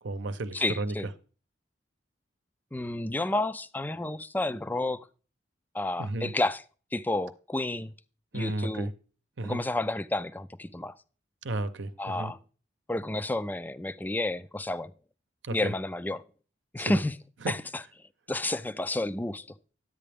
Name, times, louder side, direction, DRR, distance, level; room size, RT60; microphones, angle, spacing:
voice 1, 0.0-1.1 6.0-6.3 8.3-8.9 9.4-9.6 11.4-12.3 15.4-15.7 16.8-17.0 17.4-17.5, right 2 dB, 70° right, 0.8 m, -33 dB
voice 2, 0.5-1.1 2.7-5.0 5.7-6.6 6.9-7.9 8.3-8.9 9.4-10.9 12.0-12.4 12.9-14.9 15.5-16.2 16.7-17.1 17.5-17.6 18.3-19.4, left 2 dB, 10° left, 0.4 m, -30 dB
11.0 x 8.5 x 3.4 m
head